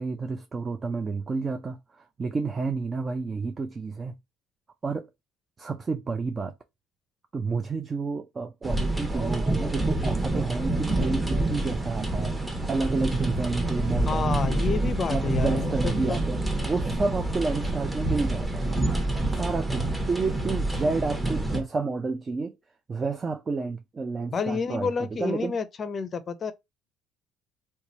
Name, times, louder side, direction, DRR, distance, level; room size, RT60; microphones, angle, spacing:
voice 1, 0.0-4.1 4.8-5.0 5.6-6.5 7.3-12.4 12.7-14.7 15.1-16.4 16.7-18.8 19.3-22.5 22.9-24.9 25.2-25.6, right 4 dB, 30° right, 0.4 m, -30 dB
sound 1, 8.6-21.6, right 2 dB, 10° right, 1.0 m, -27 dB
voice 2, 14.1-16.2 24.3-26.5, left 5 dB, 40° left, 0.5 m, -30 dB
3.0 x 2.3 x 3.9 m
supercardioid pair, 95°, 0 cm